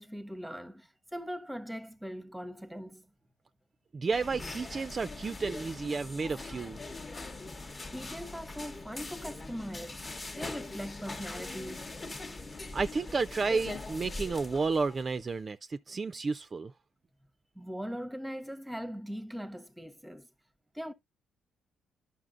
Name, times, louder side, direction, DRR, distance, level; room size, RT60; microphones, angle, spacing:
voice 1, 0.0-3.0 7.9-11.9 17.6-20.3 20.7-20.9, equal, 5° right, 0.7 m, -41 dB
voice 2, 3.9-6.8 12.7-16.7, right 4 dB, 35° right, 0.3 m, -32 dB
sound 1, 4.1-15.2, left 2 dB, 25° left, 0.8 m, -42 dB
11.0 x 5.6 x 2.5 m
cardioid pair, 90°, 0 cm